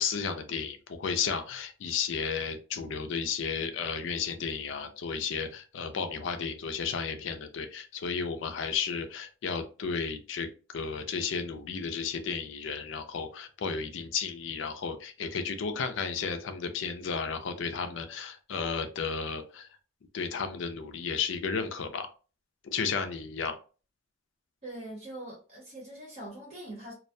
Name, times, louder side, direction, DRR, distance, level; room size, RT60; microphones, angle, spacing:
voice 1, 0.0-19.7 20.1-22.1 22.6-23.5, left 6 dB, 65° left, 0.4 m, -33 dB
voice 2, 24.6-26.9, right 1 dB, 40° right, 0.9 m, -42 dB
2.3 x 2.1 x 2.6 m
head